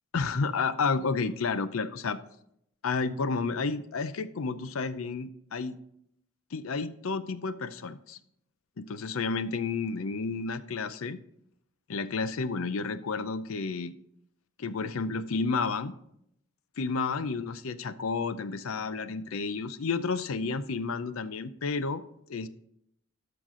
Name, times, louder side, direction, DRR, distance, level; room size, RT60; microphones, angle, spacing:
voice 1, 0.1-2.2 2.8-5.8 6.5-8.2 8.8-11.2 11.9-13.9 14.6-15.9 16.8-22.0 22.3-22.5, left 4 dB, 90° left, 14 dB, 0.6 m, -31 dB
12.0 x 5.9 x 3.7 m, 0.74 s
head